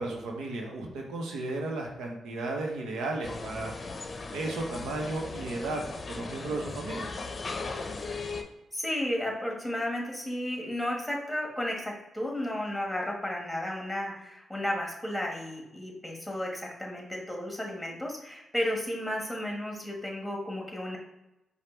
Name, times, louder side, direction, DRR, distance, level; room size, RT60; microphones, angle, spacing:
voice 1, 0.0-3.7 4.3-7.1, right 2 dB, 85° right, 1 dB, 0.9 m, -34 dB
sound 1, 3.2-8.4, left 3 dB, 40° left, 0.7 m, -37 dB
voice 2, 8.7-21.0, left 1 dB, 5° left, -1 dB, 1.5 m, -33 dB
5.0 x 2.4 x 4.4 m, 0.96 s
cardioid pair, 70°, 0 cm